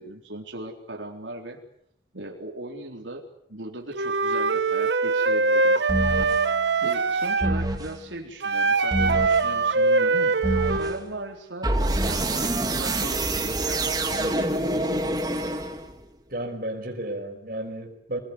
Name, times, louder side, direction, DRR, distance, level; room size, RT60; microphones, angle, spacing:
voice 1, 0.0-1.6 2.1-3.2 3.5-5.8 6.2-15.2, right 2 dB, 90° right, 1 dB, 4.1 m, -38 dB
Wind instrument woodwind instrument, 3.9-7.6 8.4-11.0, right 3 dB, 70° right, 1.4 m, -23 dB
sound 1, 5.9-6.4 7.4-8.0 8.9-9.5 10.4-11.0 11.6-16.0, right 1 dB, 20° right, 2.3 m, -26 dB
voice 2, 16.3-18.2, right 1 dB, 50° right, 2 dB, 5.4 m, -32 dB
27.0 x 20.0 x 9.8 m, 0.72 s
head